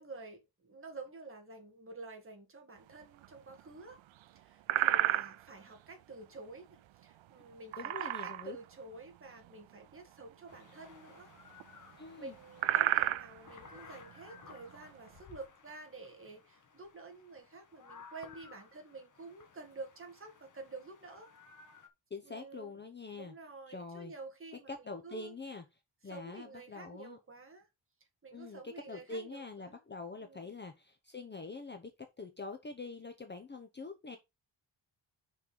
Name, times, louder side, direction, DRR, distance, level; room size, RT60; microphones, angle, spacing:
voice 1, 0.0-4.0 4.3-11.3 12.2-21.3 22.2-22.8 23.1-25.3 26.0-27.7 28.2-29.8 30.2-30.5, right 3 dB, 30° right, 1.8 m, -50 dB
sound 1, 3.0-3.6 4.0-4.2 4.6-5.7 7.5-8.6 8.9-9.0 9.4-9.6 10.5-11.7 11.9-12.0 12.3-15.2, right 13 dB, 90° right, 0.6 m, -32 dB
voice 2, 7.8-8.6 12.0-12.4 22.1-23.3 23.7-24.1 24.7-25.6 26.0-27.2 28.3-31.9 32.2-34.2, left 3 dB, 25° left, 0.7 m, -44 dB
sound 2, 10.5-21.9, left 5 dB, 40° left, 1.2 m, -57 dB
6.2 x 4.6 x 5.2 m
wide cardioid pair, 175°, 45 cm